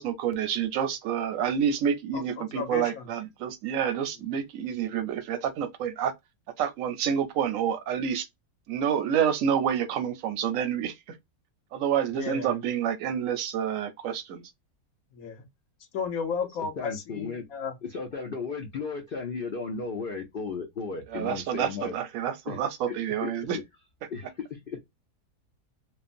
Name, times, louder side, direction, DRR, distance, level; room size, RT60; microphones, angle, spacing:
voice 1, 0.0-6.1 6.6-8.3 8.7-10.9 11.7-14.4 21.1-23.6, right 8 dB, 70° right, 0.8 m, -28 dB
voice 2, 2.1-3.1 12.1-12.6 15.1-15.4 15.9-17.8, left 6 dB, 65° left, 1.2 m, -34 dB
voice 3, 16.8-17.4 17.8-21.9 22.5-22.6 22.9-23.0 23.2-23.6 24.1-24.8, left 5 dB, 90° left, 0.4 m, -35 dB
3.1 x 2.0 x 2.4 m
omnidirectional pair, 1.7 m